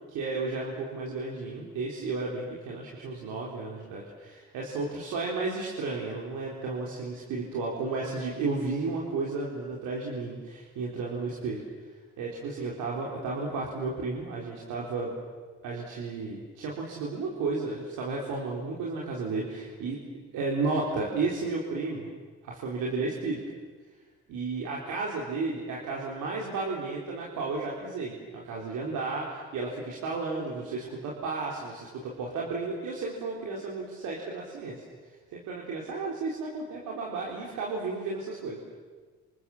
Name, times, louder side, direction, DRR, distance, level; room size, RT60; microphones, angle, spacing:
voice 1, 0.1-11.6 12.2-15.1 15.6-20.0 20.3-22.1 22.4-23.4 24.3-34.8 35.3-38.6, right 3 dB, 90° right, -3 dB, 4.3 m, -33 dB
27.5 x 27.5 x 7.4 m, 1.4 s
cardioid pair, 90°, 30 cm